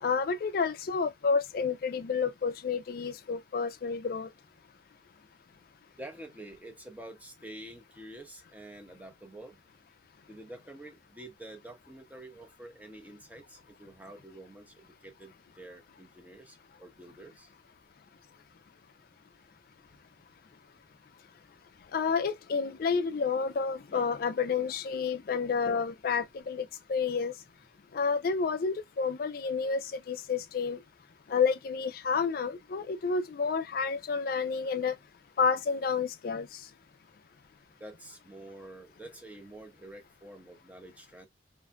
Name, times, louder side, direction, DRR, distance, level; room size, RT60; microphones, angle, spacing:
voice 1, 0.0-4.3 21.9-27.3 27.9-30.8 31.3-34.9 35.4-36.6, left 5 dB, 50° left, 0.3 m, -30 dB
voice 2, 6.0-9.6 10.3-17.5 19.9-20.0 23.9-24.1 37.8-41.3, right 1 dB, 10° right, 0.5 m, -48 dB
2.5 x 2.4 x 2.2 m
head